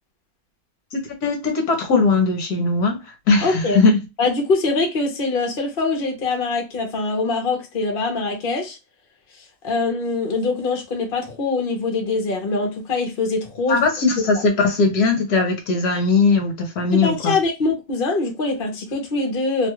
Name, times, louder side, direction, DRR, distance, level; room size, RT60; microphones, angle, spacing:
voice 1, 0.9-4.0 13.7-17.3, left 4 dB, 65° left, 1.2 m, -19 dB
voice 2, 3.4-3.8 4.2-8.8 9.6-13.8 16.9-19.7, left 3 dB, 45° left, 0.7 m, -23 dB
3.0 x 2.3 x 2.9 m
omnidirectional pair, 2.0 m